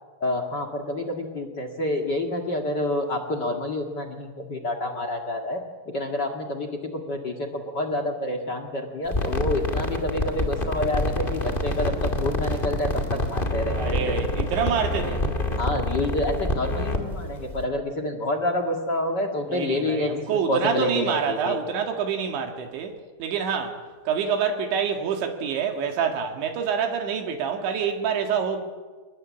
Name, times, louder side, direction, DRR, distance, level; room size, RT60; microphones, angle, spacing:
voice 1, 0.2-14.2 15.6-20.1 20.5-21.6, left 1 dB, 50° left, 1.2 m, -28 dB
sound 1, 9.1-17.7, left 1 dB, 25° left, 1.1 m, -27 dB
voice 2, 13.7-15.3 19.5-23.8 24.1-28.6, right 7 dB, 80° right, 4.3 m, -27 dB
28.0 x 20.5 x 8.5 m
omnidirectional pair, 5.2 m